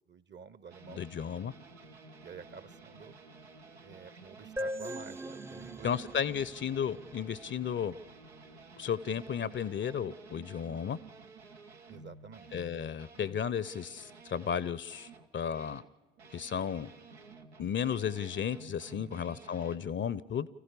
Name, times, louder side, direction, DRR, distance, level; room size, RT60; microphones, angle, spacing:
voice 1, 0.0-1.1 2.2-3.2 3.8-6.0 11.9-12.5 18.9-19.4, right 5 dB, 35° right, 17 dB, 0.9 m, -50 dB
sound 1, 0.7-15.9 16.2-19.8, right 3 dB, 85° right, 0.9 m, -53 dB
voice 2, 0.9-1.5 5.8-7.9 8.8-11.0 12.5-15.8 16.3-16.9 17.6-20.5, left 8 dB, 35° left, 19 dB, 0.7 m, -34 dB
sound 2, 4.6-8.1, equal, 10° right, 0.6 m, -42 dB
25.5 x 15.5 x 6.8 m, 1.1 s
figure-of-eight pair, 40°, 32 cm